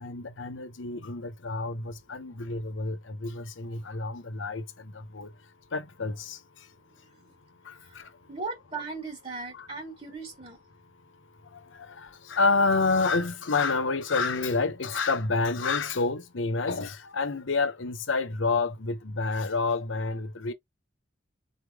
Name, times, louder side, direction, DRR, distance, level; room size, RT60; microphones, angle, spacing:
voice 1, 0.0-5.3 5.7-6.4 7.6-8.1 9.5-9.7 11.5-20.5, left 3 dB, 90° left, 0.9 m, -29 dB
voice 2, 7.8-10.6, right 3 dB, 35° right, 1.6 m, -38 dB
4.3 x 3.3 x 3.4 m
head